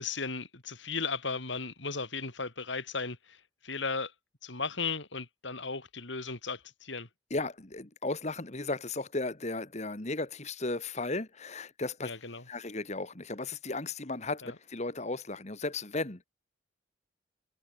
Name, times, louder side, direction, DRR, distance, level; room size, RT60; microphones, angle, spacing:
voice 1, 0.0-4.1 4.4-7.1 12.0-12.4 14.4-14.5, left 4 dB, 70° left, 3.6 m, -36 dB
voice 2, 7.3-12.2 12.5-16.2, left 2 dB, 35° left, 1.7 m, -35 dB
head